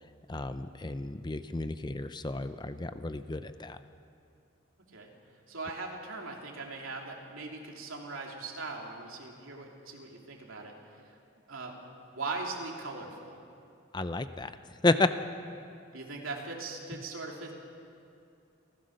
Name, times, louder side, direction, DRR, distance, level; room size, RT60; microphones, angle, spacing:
voice 1, 0.3-3.8 13.9-14.5 14.8-15.1, left 2 dB, 20° left, 11 dB, 0.6 m, -31 dB
voice 2, 5.5-10.7 11.0-11.1 11.5-11.8 12.1-13.4 15.9-17.5, right 3 dB, 90° right, 0 dB, 3.1 m, -40 dB
28.0 x 15.5 x 6.6 m, 2.5 s
head